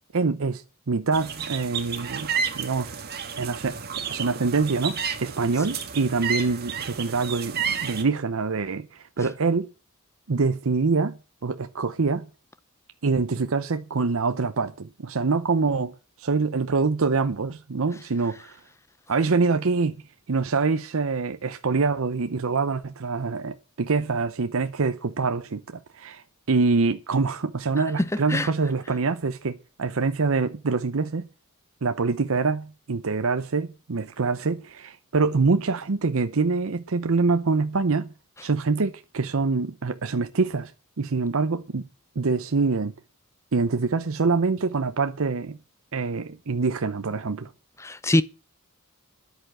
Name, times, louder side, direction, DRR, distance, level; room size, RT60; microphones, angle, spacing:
voice 1, 0.1-3.0 3.4-3.8 4.1-9.7 10.3-12.3 13.0-18.6 19.1-20.0 20.3-31.3 31.8-38.1 38.4-40.7 41.0-41.9 42.2-42.9 43.5-45.6 45.9-47.5, right 4 dB, 65° right, 0.7 m, -25 dB
sound 1, 1.1-8.0, right 7 dB, 45° right, 1.7 m, -31 dB
voice 2, 28.0-28.5 47.8-48.2, left 1 dB, 15° left, 0.7 m, -23 dB
10.5 x 8.2 x 7.6 m
head